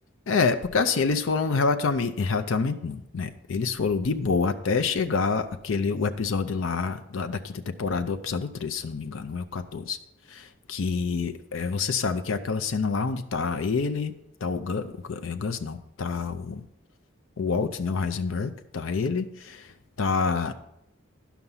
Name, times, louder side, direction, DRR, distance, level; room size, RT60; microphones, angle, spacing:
voice 1, 0.3-10.0 10.3-14.1 14.4-16.6 17.4-19.7 20.0-20.5, left 4 dB, 80° left, 9 dB, 0.5 m, -27 dB
11.0 x 5.8 x 5.5 m, 0.84 s
head